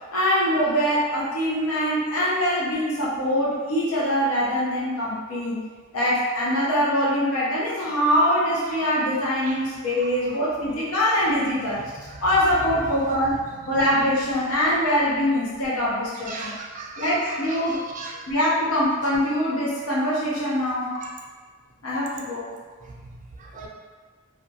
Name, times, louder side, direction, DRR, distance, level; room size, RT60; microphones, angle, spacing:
voice 1, 0.1-5.6 5.9-11.8 12.2-16.5 17.0-17.8 18.3-21.0 21.8-22.5, equal, 70° left, -7 dB, 0.6 m, -23 dB
voice 2, 16.3-18.2 20.9-21.1 22.8-23.7, right 3 dB, 35° right, -1 dB, 0.4 m, -38 dB
2.8 x 2.2 x 2.7 m, 1.4 s
head